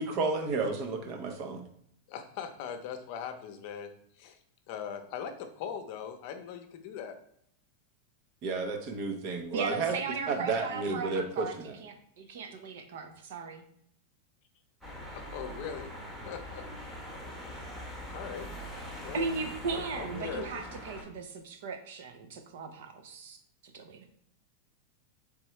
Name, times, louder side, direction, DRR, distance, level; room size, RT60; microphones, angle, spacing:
voice 1, 0.0-1.6 8.4-10.0 10.3-11.8, right 4 dB, 45° right, 5 dB, 0.8 m, -32 dB
voice 2, 2.1-3.9 4.2-4.4 4.7-7.1 15.1-15.9 16.3-16.7 18.1-18.5 19.0-19.3 19.7-20.5, left 8 dB, 55° left, 7 dB, 0.7 m, -40 dB
voice 3, 9.5-11.5 11.8-13.6 19.1-23.4 23.7-24.0, right 4 dB, 75° right, 5 dB, 0.8 m, -37 dB
sound 1, 14.8-21.0, equal, 5° right, 1.0 m, -42 dB
4.4 x 3.5 x 3.1 m, 0.69 s
supercardioid pair, 145°, 0 cm